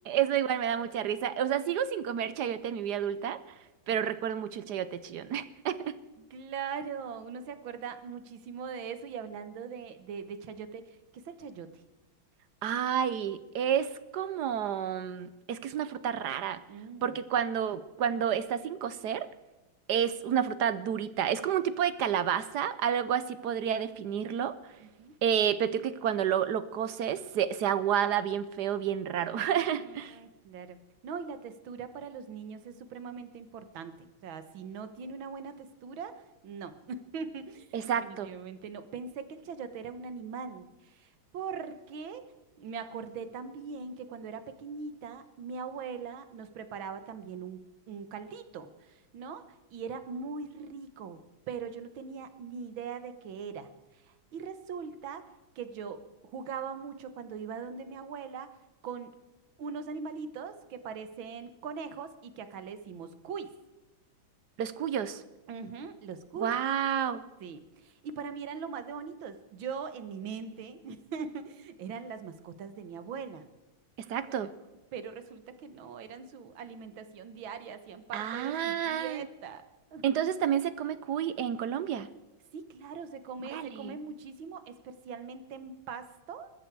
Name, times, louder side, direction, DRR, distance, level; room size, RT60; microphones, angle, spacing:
voice 1, 0.1-3.4 3.9-5.9 12.6-16.6 17.0-19.3 19.9-24.7 25.2-30.2 37.7-38.3 64.6-65.2 66.4-67.2 74.1-74.5 78.1-79.3 80.0-82.1 83.5-84.0, right 9 dB, 65° right, 14 dB, 1.2 m, -30 dB
voice 2, 6.2-11.8 16.7-17.2 24.8-25.1 29.8-30.8 31.0-42.3 42.6-51.2 51.5-53.7 54.0-55.3 55.6-56.0 56.3-58.6 58.8-59.2 59.6-63.5 65.5-66.6 67.4-73.5 74.3-74.4 74.9-79.6 79.9-80.1 82.5-86.5, right 6 dB, 85° right, 10 dB, 2.0 m, -41 dB
21.0 x 13.5 x 4.7 m, 1.1 s
omnidirectional pair, 2.1 m